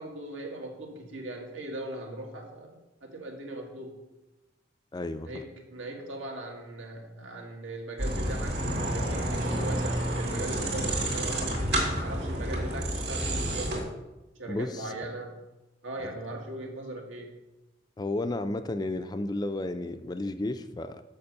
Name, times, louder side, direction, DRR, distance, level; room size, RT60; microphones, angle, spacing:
voice 1, 0.0-3.9 5.2-13.7 14.4-15.4 15.8-17.3, right 1 dB, 85° right, 1 dB, 1.7 m, -39 dB
voice 2, 4.9-5.4 14.5-14.9 16.0-16.1 18.0-21.0, left 2 dB, 20° left, 10 dB, 0.3 m, -32 dB
sound 1, 8.0-13.8, right 1 dB, 55° right, 2.3 m, -29 dB
6.9 x 5.2 x 6.5 m, 1.0 s
head